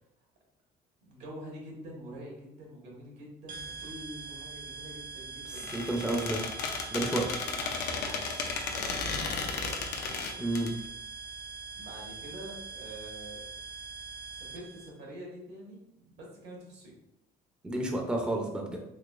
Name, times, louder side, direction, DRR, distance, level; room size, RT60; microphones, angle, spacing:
voice 1, 1.0-5.8 7.6-9.9 11.7-13.5 14.4-16.9, right 1 dB, 80° right, -2 dB, 1.4 m, -46 dB
sound 1, 3.5-14.9, right 4 dB, 55° right, 0.7 m, -43 dB
voice 2, 5.4-6.4 6.9-7.4 10.4-10.7 17.6-18.8, right 1 dB, 5° right, 1 dB, 0.5 m, -31 dB
Squeak, 5.6-10.7, left 5 dB, 75° left, 0.5 m, -34 dB
3.8 x 2.8 x 2.4 m, 0.83 s
cardioid pair, 110°, 17 cm